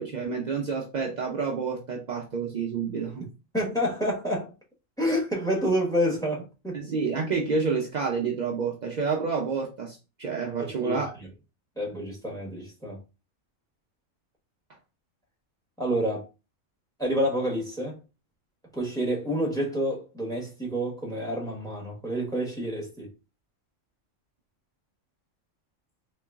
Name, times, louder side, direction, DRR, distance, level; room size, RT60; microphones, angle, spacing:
voice 1, 0.0-3.2 6.7-11.1, right 5 dB, 65° right, 0.4 m, -29 dB
voice 2, 3.5-4.5 5.0-6.8 10.6-11.3 11.8-13.0 15.8-16.3 17.0-18.0 18.7-23.1, equal, 5° left, 1.1 m, -28 dB
3.7 x 3.1 x 2.3 m
omnidirectional pair, 1.4 m